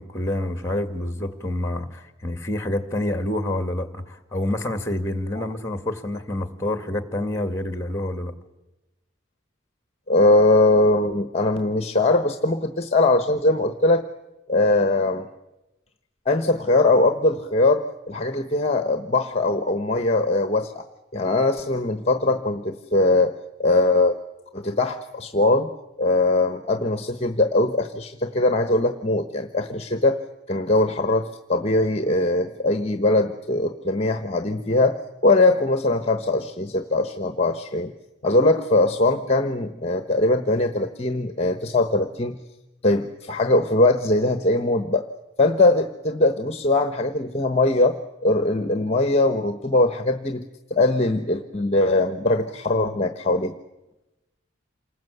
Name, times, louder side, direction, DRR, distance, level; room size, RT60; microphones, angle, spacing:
voice 1, 0.0-8.3, left 1 dB, 15° left, 9 dB, 1.9 m, -27 dB
voice 2, 10.1-14.0 14.5-15.3 16.3-20.9 21.1-23.3 23.6-24.2 24.5-25.7 26.0-30.2 30.5-35.0 35.2-37.9 38.2-42.4 42.8-45.1 45.4-48.0 48.2-50.4 50.7-53.5, left 2 dB, 30° left, 8 dB, 1.1 m, -21 dB
27.5 x 20.0 x 8.1 m, 0.99 s
head